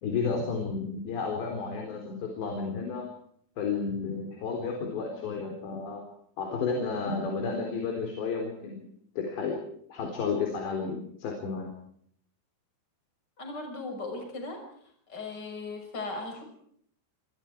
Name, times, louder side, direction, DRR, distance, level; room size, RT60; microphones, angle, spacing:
voice 1, 0.0-3.1 3.6-6.0 6.4-8.8 9.2-9.6 9.9-11.7, left 5 dB, 85° left, 2 dB, 6.3 m, -32 dB
voice 2, 13.4-14.6 15.1-16.4, left 3 dB, 25° left, 4 dB, 6.4 m, -37 dB
29.0 x 26.0 x 4.8 m, 0.67 s
omnidirectional pair, 4.9 m